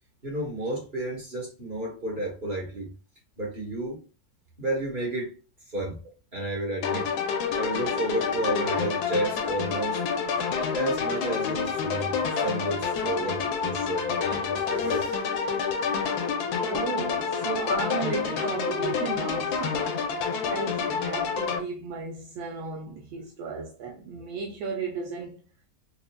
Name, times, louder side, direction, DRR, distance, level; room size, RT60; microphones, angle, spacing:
voice 1, 0.2-2.9 3.4-4.0 4.6-5.3 5.7-6.0 6.3-7.1 7.5-10.0 10.7-15.1, right 1 dB, 30° right, 1.2 m, -31 dB
sound 1, 6.8-21.6, left 6 dB, 70° left, 1.0 m, -28 dB
voice 2, 16.7-25.4, right 5 dB, 85° right, 1.4 m, -35 dB
4.5 x 2.2 x 2.2 m
omnidirectional pair, 2.0 m